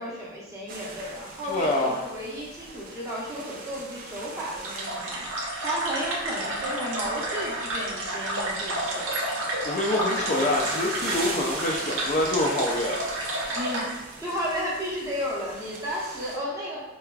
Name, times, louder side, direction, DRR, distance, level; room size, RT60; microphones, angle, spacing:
voice 1, 0.0-5.2 5.6-9.1 13.5-13.9 14.2-16.8, equal, 15° right, -7 dB, 0.8 m, -33 dB
sound 1, 0.7-16.4, right 2 dB, 40° right, 0.5 m, -40 dB
voice 2, 1.5-2.0 9.6-13.0, left 1 dB, 35° left, -1 dB, 0.4 m, -26 dB
sound 2, 4.6-13.9, right 1 dB, 85° right, 0.7 m, -31 dB
4.5 x 2.3 x 2.3 m, 1.1 s
head